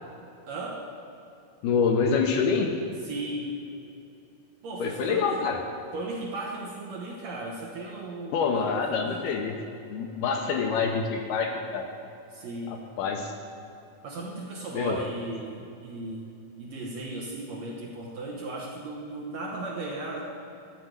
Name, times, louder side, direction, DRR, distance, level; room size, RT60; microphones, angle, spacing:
voice 1, 0.5-0.9 3.0-3.6 4.6-5.4 5.9-9.2 12.3-12.8 14.0-16.3 16.6-20.3, right 2 dB, 65° right, -3 dB, 1.9 m, -36 dB
voice 2, 1.6-2.7 4.8-5.6 8.3-9.5 9.9-11.9 12.7-13.3 14.7-15.0, left 5 dB, 80° left, 2 dB, 2.1 m, -26 dB
11.5 x 4.7 x 7.9 m, 2.8 s
omnidirectional pair, 4.1 m